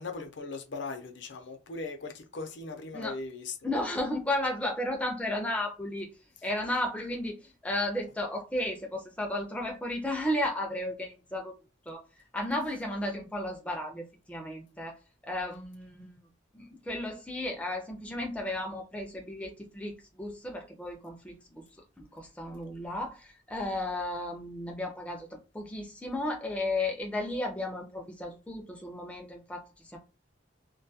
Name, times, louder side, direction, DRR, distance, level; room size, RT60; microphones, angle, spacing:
voice 1, 0.0-3.7, left 3 dB, 65° left, 0.5 m, -39 dB
voice 2, 3.6-6.1 6.4-11.5 11.9-12.0 12.3-15.0 15.2-16.2 16.5-21.6 22.0-25.3 25.5-30.0, left 1 dB, 5° left, 0.3 m, -34 dB
2.2 x 2.2 x 2.6 m
head